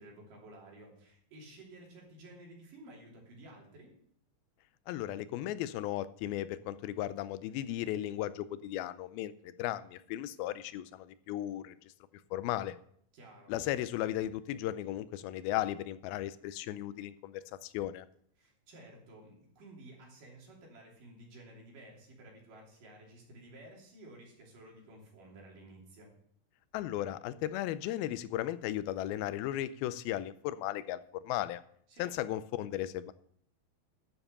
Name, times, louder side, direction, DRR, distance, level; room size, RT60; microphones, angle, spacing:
voice 1, 0.0-3.9 13.1-13.5 18.4-26.1 31.9-32.1, right 1 dB, 65° right, -2 dB, 4.6 m, -53 dB
voice 2, 4.9-11.8 12.3-12.8 13.5-18.1 26.7-31.0 31.2-31.6 32.0-33.1, left 13 dB, 90° left, 15 dB, 2.5 m, -36 dB
11.0 x 7.2 x 6.7 m, 0.65 s
omnidirectional pair, 4.2 m